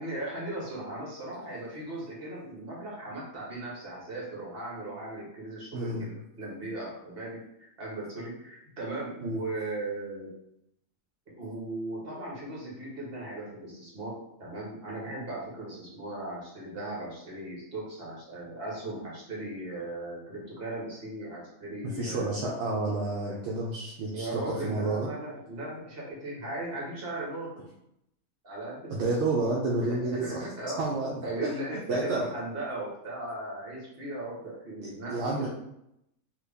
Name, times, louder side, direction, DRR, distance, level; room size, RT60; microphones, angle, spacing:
voice 1, 0.0-10.3 11.4-22.3 24.1-27.5 28.4-29.1 29.8-30.8 31.2-35.5, right 1 dB, 45° right, -5 dB, 1.4 m, -37 dB
voice 2, 5.7-6.0 9.2-9.4 21.8-25.1 28.9-30.5 30.8-31.5 31.9-32.3 34.8-35.5, right 2 dB, 65° right, -3 dB, 0.8 m, -30 dB
3.2 x 2.4 x 3.4 m, 0.80 s
omnidirectional pair, 1.4 m